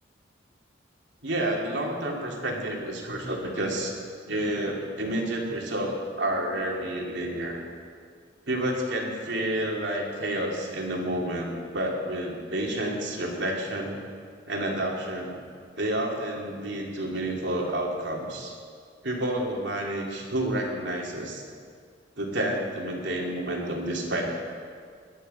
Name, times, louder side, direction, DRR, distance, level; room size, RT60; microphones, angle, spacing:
voice 1, 1.2-3.9 4.3-7.6 8.5-14.0 14.5-15.4 15.8-18.5 19.0-21.4 22.2-24.2, right 1 dB, 70° right, -1 dB, 3.0 m, -29 dB
21.5 x 11.0 x 5.7 m, 2.1 s
head